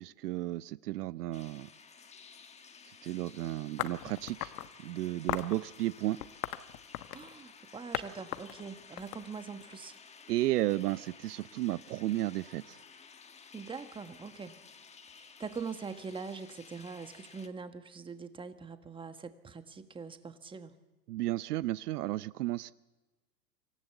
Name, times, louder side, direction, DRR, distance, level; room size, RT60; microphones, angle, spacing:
voice 1, 0.0-1.7 3.0-4.5 4.8-6.2 10.3-12.8 21.1-22.7, right 16 dB, 65° right, 0.8 m, -33 dB
sound 1, 1.3-17.5, left 5 dB, 15° left, 1.4 m, -55 dB
sound 2, 3.8-4.7 5.3-5.6 6.2-7.3 7.9-8.1 8.3-9.7, left 14 dB, 60° left, 1.3 m, -37 dB
voice 2, 7.1-9.9 13.5-14.6 15.1-20.8, right 5 dB, 10° right, 1.3 m, -43 dB
26.0 x 15.5 x 8.2 m
hypercardioid pair, 120°, 50 cm